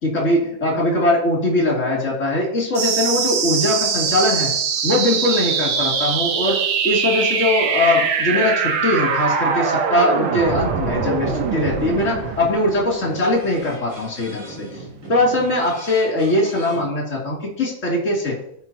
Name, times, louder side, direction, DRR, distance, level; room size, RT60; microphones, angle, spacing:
voice 1, 0.0-4.5 4.8-14.8 15.1-18.4, left 1 dB, 25° left, -3 dB, 2.8 m, -21 dB
sound 1, 2.7-13.8, right 6 dB, 75° right, 1.2 m, -22 dB
sound 2, 11.5-12.4 13.0-16.8, right 2 dB, 45° right, 4.0 m, -40 dB
15.5 x 5.5 x 2.9 m, 0.70 s
omnidirectional pair, 3.4 m